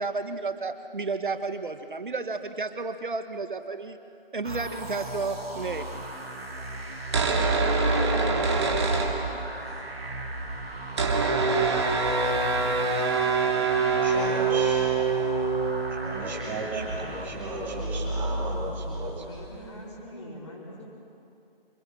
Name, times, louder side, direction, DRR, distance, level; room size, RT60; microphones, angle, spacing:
voice 1, 0.0-4.0 4.3-5.9, right 3 dB, 55° right, 8 dB, 1.8 m, -32 dB
sound 1, 4.4-17.9, right 2 dB, 85° right, 3.0 m, -38 dB
sound 2, 7.0-9.7 10.0-10.1 10.2-19.7, right 4 dB, 30° right, 2.7 m, -26 dB
voice 2, 14.0-15.0 16.0-19.2, right 2 dB, 5° right, -8 dB, 2.9 m, -35 dB
voice 3, 19.1-20.8, equal, 30° left, -9 dB, 4.7 m, -43 dB
27.5 x 27.0 x 6.5 m, 2.7 s
figure-of-eight pair, 165°, 30 cm